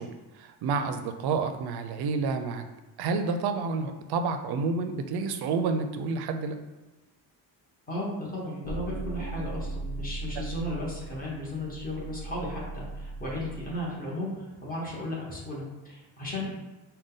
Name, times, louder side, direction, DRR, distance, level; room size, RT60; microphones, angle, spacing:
voice 1, 0.0-2.6 3.0-6.6 10.4-10.5, right 4 dB, 80° right, 7 dB, 0.6 m, -29 dB
voice 2, 7.9-16.6, left 1 dB, 20° left, -5 dB, 1.2 m, -35 dB
sound 1, 8.6-13.7, right 2 dB, 50° left, 0.9 m, -38 dB
5.0 x 2.3 x 3.8 m, 1.1 s
cardioid pair, 170°, 38 cm